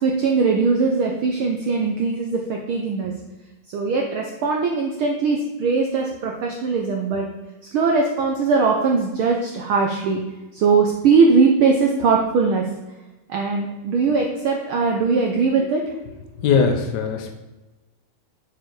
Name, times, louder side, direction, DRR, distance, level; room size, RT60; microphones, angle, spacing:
voice 1, 0.0-3.1 3.7-7.3 7.7-10.2 10.5-12.7 13.3-15.9, right 4 dB, 85° right, 1 dB, 1.1 m, -20 dB
voice 2, 16.4-17.3, left 5 dB, 90° left, 4 dB, 0.9 m, -20 dB
6.8 x 6.3 x 4.7 m, 1.1 s
omnidirectional pair, 3.3 m